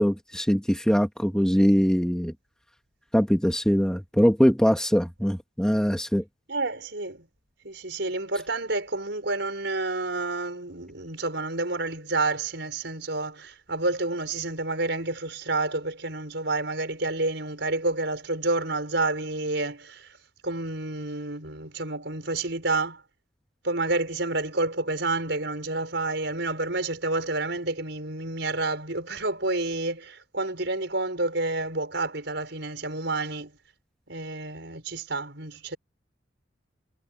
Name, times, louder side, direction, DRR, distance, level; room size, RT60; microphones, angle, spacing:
voice 1, 0.0-2.3 3.1-6.2, equal, 5° left, 2.5 m, -22 dB
voice 2, 6.5-7.3 7.6-20.1 20.4-23.0 23.6-33.5 34.1-35.8, right 2 dB, 65° right, 7.0 m, -29 dB
head